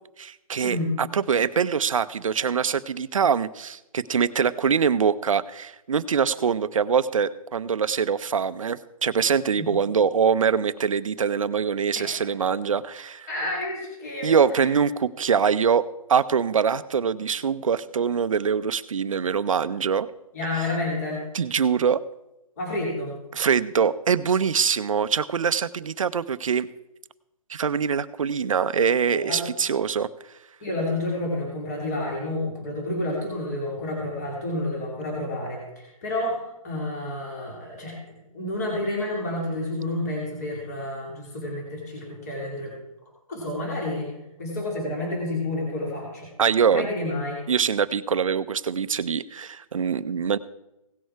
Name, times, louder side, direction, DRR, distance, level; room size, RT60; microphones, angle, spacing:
voice 1, 0.2-13.3 14.2-20.1 21.3-22.0 23.3-26.7 27.5-30.1 46.4-46.9 47.5-50.4, right 6 dB, 65° right, 13 dB, 0.6 m, -23 dB
voice 2, 11.9-12.3 13.3-14.7 20.3-21.2 22.6-23.2 29.1-29.4 30.6-38.0 38.3-42.7 43.3-44.1 44.4-46.3 46.7-47.4, left 1 dB, 30° left, -2 dB, 2.9 m, -30 dB
17.0 x 6.5 x 4.6 m, 0.90 s
hypercardioid pair, 180°, 18 cm